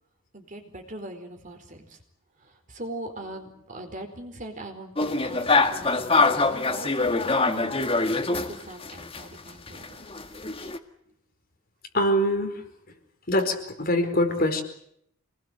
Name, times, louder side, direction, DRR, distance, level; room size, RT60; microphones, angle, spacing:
voice 1, 0.3-2.0 2.4-10.6 11.1-11.2, right 1 dB, 35° right, 5 dB, 4.5 m, -41 dB
sound 1, 5.0-9.2 9.5-10.8, left 3 dB, 25° left, 1.9 m, -24 dB
voice 2, 11.9-12.7 13.3-14.6, left 1 dB, 45° left, 5 dB, 4.7 m, -24 dB
28.0 x 20.5 x 8.1 m, 0.71 s
head